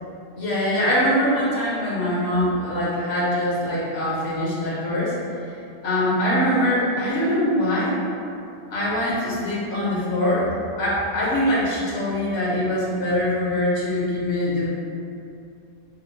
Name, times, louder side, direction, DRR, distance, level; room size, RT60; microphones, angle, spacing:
voice 1, 0.4-5.1 5.8-7.9 8.7-10.4 10.8-14.7, left 1 dB, 75° left, -6 dB, 1.2 m, -23 dB
5.6 x 2.1 x 2.8 m, 2.5 s
omnidirectional pair, 1.1 m